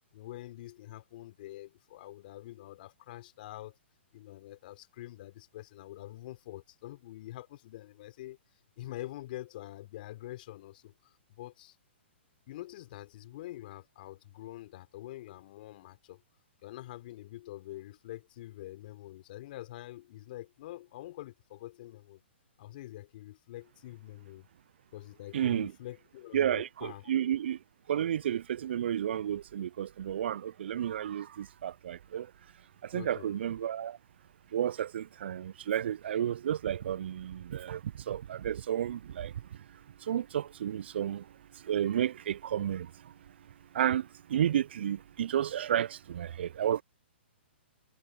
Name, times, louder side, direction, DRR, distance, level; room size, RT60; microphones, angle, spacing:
voice 1, 0.1-3.8 4.1-8.4 8.8-11.8 12.5-16.2 16.6-22.2 22.6-24.5 24.9-27.1 32.9-33.3, left 15 dB, 50° left, 3.9 m, -46 dB
voice 2, 25.3-25.7 26.3-27.6 27.9-32.3 32.9-34.0 34.5-39.3 40.1-41.2 41.7-42.9 43.7-46.8, right 10 dB, 65° right, 0.3 m, -31 dB
hypercardioid pair, 130°, 6 cm